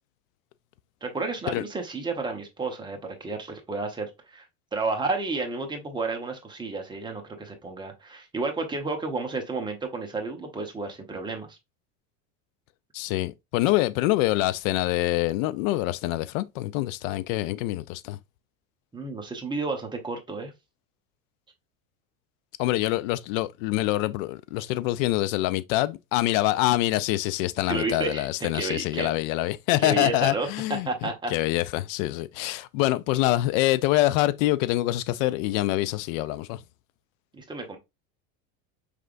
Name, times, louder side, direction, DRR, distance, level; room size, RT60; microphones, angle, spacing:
voice 1, 1.0-4.5 4.7-11.6 18.9-20.5 27.7-29.1 29.8-30.5 30.8-31.3 37.3-37.8, right 3 dB, 10° right, 0.8 m, -31 dB
voice 2, 12.9-18.2 22.6-36.6, left 16 dB, 70° left, 0.5 m, -25 dB
5.0 x 3.3 x 2.5 m
supercardioid pair, 140°, 42 cm